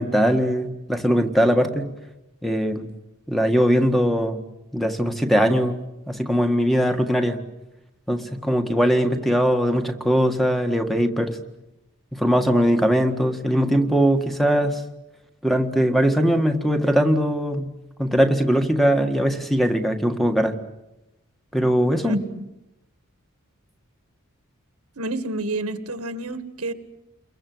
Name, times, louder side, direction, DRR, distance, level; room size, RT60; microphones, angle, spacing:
voice 1, 0.0-1.9 2.4-2.9 3.3-4.4 4.7-5.8 6.1-7.4 8.1-11.4 12.1-14.8 15.4-17.7 18.0-20.5 21.5-22.2, equal, ahead, 6 dB, 1.7 m, -20 dB
voice 2, 22.0-22.4 25.0-26.7, right 1 dB, 85° right, 10 dB, 1.8 m, -29 dB
29.5 x 22.5 x 7.9 m, 0.95 s
head